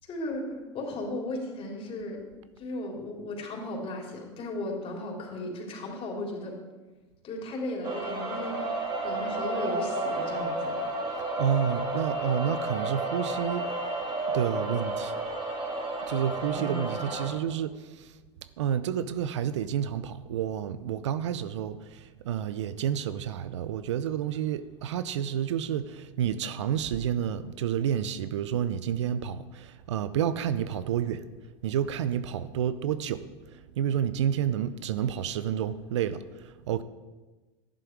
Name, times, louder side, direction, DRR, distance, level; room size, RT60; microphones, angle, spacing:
voice 1, 0.0-2.2 2.6-6.6 7.2-8.6 9.0-10.8 16.5-17.1, left 1 dB, 40° left, 3.7 m, -36 dB
sound 1, 7.8-17.3, right 2 dB, 30° right, 3.0 m, -31 dB
voice 2, 11.4-14.0 14.3-15.1 16.1-18.2 18.6-31.3 31.6-33.2 33.5-36.8, right 9 dB, 80° right, 0.6 m, -30 dB
11.5 x 10.5 x 4.7 m
hypercardioid pair, 85°, 15 cm